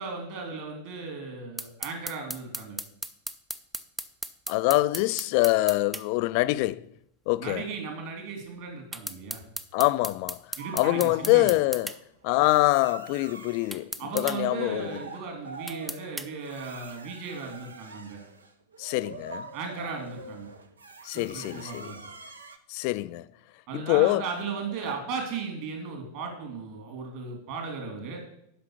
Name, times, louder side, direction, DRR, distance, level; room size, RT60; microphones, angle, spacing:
voice 1, 0.0-2.8 7.4-9.4 10.6-11.5 14.0-18.2 19.5-20.5 21.1-22.0 23.7-28.3, right 4 dB, 45° right, 3.1 m, -36 dB
sound 1, 1.6-6.1 8.9-12.0 13.7-14.4 15.7-16.3, right 1 dB, 5° right, 0.6 m, -36 dB
voice 2, 4.5-6.9 7.3-7.6 9.7-10.4 10.7-11.9 12.2-14.9 18.8-19.5 21.0-21.9 22.7-23.3 23.7-24.2, left 19 dB, 45° left, 0.4 m, -24 dB
sound 2, 10.6-12.0 12.4-13.9 14.3-22.6, right 4 dB, 75° right, 0.8 m, -45 dB
9.2 x 5.7 x 6.4 m
figure-of-eight pair, 90°, 0 cm